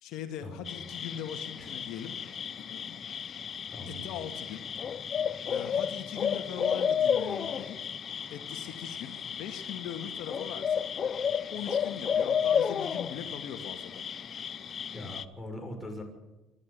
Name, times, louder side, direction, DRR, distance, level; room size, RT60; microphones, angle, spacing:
voice 1, 0.0-2.1 2.6-3.0 3.9-4.7 5.5-7.9 8.3-10.8 11.5-14.0, left 9 dB, 75° left, 6 dB, 2.0 m, -41 dB
sound 1, 0.7-15.2, left 7 dB, 40° left, 0.9 m, -32 dB
voice 2, 3.7-4.1 14.9-16.0, left 1 dB, 10° left, 2 dB, 6.4 m, -41 dB
26.0 x 12.0 x 8.5 m, 1.1 s
cardioid pair, 105°, 0 cm